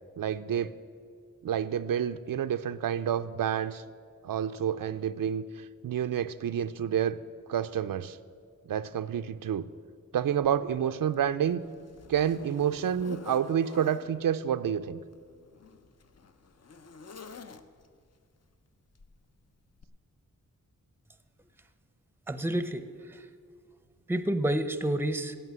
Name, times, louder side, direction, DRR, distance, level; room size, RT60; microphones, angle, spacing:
voice 1, 0.2-0.7 1.4-3.8 4.2-5.4 5.8-7.2 7.5-8.2 8.7-9.6 10.1-11.6 12.1-15.0, right 9 dB, 85° right, 11 dB, 0.5 m, -29 dB
Zipper (clothing), 10.4-10.6 11.1-14.1 15.0-18.0 19.0-19.2 19.8-19.9, left 6 dB, 50° left, 0.6 m, -48 dB
voice 2, 22.3-22.8 23.1-23.2 24.1-25.4, right 1 dB, 5° right, 11 dB, 0.6 m, -29 dB
15.5 x 5.8 x 9.3 m, 2.1 s
wide cardioid pair, 115°, 33 cm